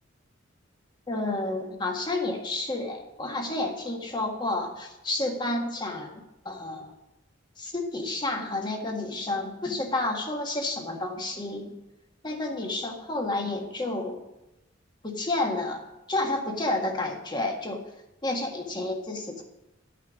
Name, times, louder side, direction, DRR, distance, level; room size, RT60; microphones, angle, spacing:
voice 1, 1.1-6.9 7.6-11.7 12.2-14.2 15.0-17.8 18.2-19.4, left 2 dB, 25° left, 2 dB, 1.6 m, -30 dB
11.5 x 5.8 x 7.1 m, 0.92 s
head